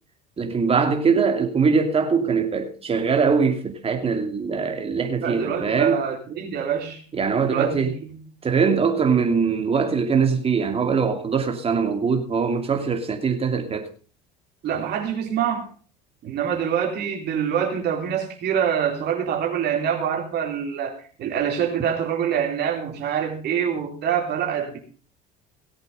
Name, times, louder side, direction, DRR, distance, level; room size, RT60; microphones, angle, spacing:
voice 1, 0.4-6.0 7.1-7.9 8.4-13.9, right 5 dB, 30° right, 2.8 m, -22 dB
voice 2, 5.2-7.0 7.4-8.2 14.6-15.7 16.2-24.8, right 8 dB, 55° right, 3.7 m, -25 dB
18.5 x 8.1 x 5.5 m
hypercardioid pair, 75°, 21 cm